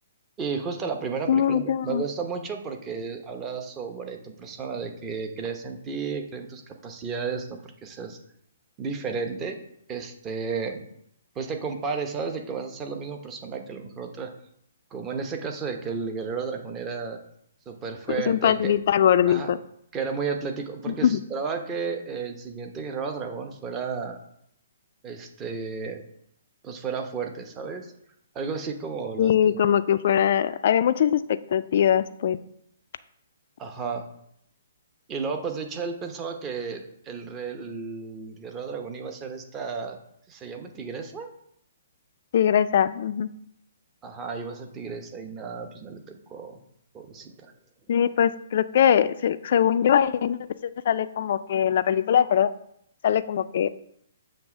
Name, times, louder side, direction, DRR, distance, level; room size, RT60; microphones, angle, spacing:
voice 1, 0.4-8.2 8.8-9.6 9.9-10.9 11.3-14.3 14.9-17.2 17.7-18.7 19.3-19.5 19.9-24.2 25.0-26.0 26.6-27.9 28.3-29.7 33.6-34.0 35.1-40.0 40.3-41.3 44.0-46.6 46.9-47.5, right 5 dB, 20° right, 4 dB, 0.9 m, -33 dB
voice 2, 1.3-2.0 18.1-19.6 20.9-21.2 29.2-32.4 42.3-43.3 47.9-52.5 53.0-53.8, left 9 dB, 55° left, 12 dB, 0.3 m, -22 dB
7.0 x 3.2 x 5.9 m, 0.73 s
hypercardioid pair, 135°, 0 cm